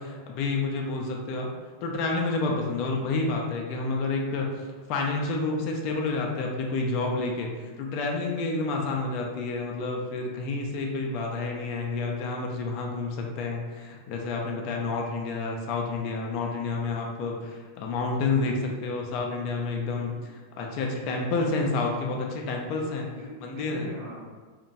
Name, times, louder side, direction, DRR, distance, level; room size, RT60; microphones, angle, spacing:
voice 1, 0.0-1.5 1.8-4.5 4.9-20.2 20.6-23.1 23.4-23.9, left 3 dB, 45° left, 1 dB, 0.4 m, -29 dB
voice 2, 19.8-20.3 23.0-24.3, right 1 dB, 45° right, -5 dB, 0.9 m, -42 dB
2.9 x 2.1 x 2.6 m, 1.4 s
figure-of-eight pair, 90°, 0 cm